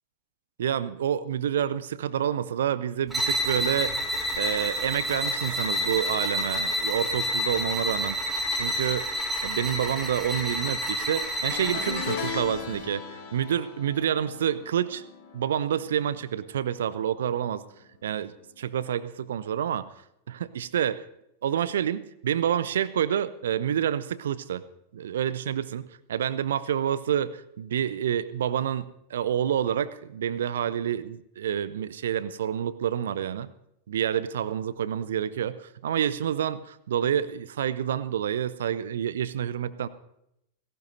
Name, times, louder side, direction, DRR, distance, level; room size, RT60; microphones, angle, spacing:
voice 1, 0.6-4.0 4.3-9.1 9.4-13.0 13.3-15.0 15.3-17.6 18.0-19.9 20.3-21.0 21.4-24.6 24.9-33.5 33.9-39.9, right 9 dB, 60° right, 16 dB, 0.6 m, -28 dB
sound 1, 3.1-12.4, equal, 5° right, 3.4 m, -29 dB
sound 2, 11.5-16.9 17.2-17.5 18.8-18.9, left 7 dB, 50° left, 1.6 m, -38 dB
17.5 x 16.5 x 2.7 m, 0.79 s
figure-of-eight pair, 90°, 0 cm